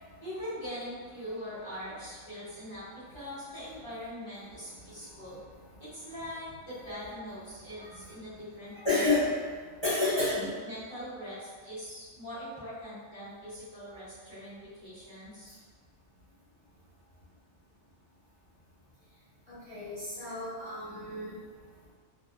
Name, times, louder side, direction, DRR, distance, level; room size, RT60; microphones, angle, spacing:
voice 1, 0.2-5.4 5.8-9.1 10.0-15.5, equal, 15° right, -13 dB, 1.0 m, -42 dB
voice 2, 8.8-9.3 9.8-10.4 19.7-21.3, left 2 dB, 25° left, -14 dB, 0.9 m, -29 dB
2.6 x 2.5 x 2.5 m, 1.5 s
omnidirectional pair, 1.5 m